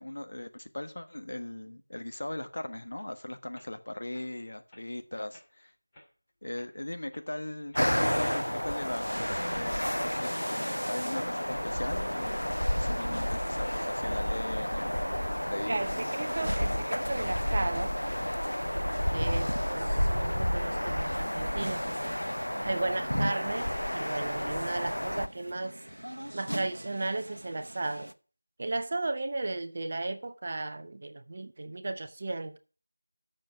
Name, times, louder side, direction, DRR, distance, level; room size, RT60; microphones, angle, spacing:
voice 1, 0.0-5.7 6.4-15.0 15.4-15.9, left 1 dB, 55° left, 1.2 m, -39 dB
sound 1, 3.0-3.1 3.5-3.7 4.1-4.3 4.7-4.8 5.3-5.6 5.9-6.1 6.5-6.7 7.1-7.3 7.7-7.9 8.3-8.5 8.8-9.1 9.4-9.6 10.0-10.2 10.6-11.2 11.6-11.9 12.3-12.5 13.0-13.2 13.6-15.0 15.3-15.5 15.8-16.4, left 1 dB, 15° left, 2.4 m, -57 dB
sound 2, 7.8-25.3, equal, 90° left, 0.7 m, -31 dB
sound 3, 9.2-28.1, equal, 90° right, 0.8 m, -45 dB
voice 2, 15.7-17.9 19.1-22.2 22.6-25.7 26.3-28.1 28.6-32.6, right 2 dB, 30° right, 0.6 m, -35 dB
8.2 x 6.6 x 7.8 m
figure-of-eight pair, 170°, 0 cm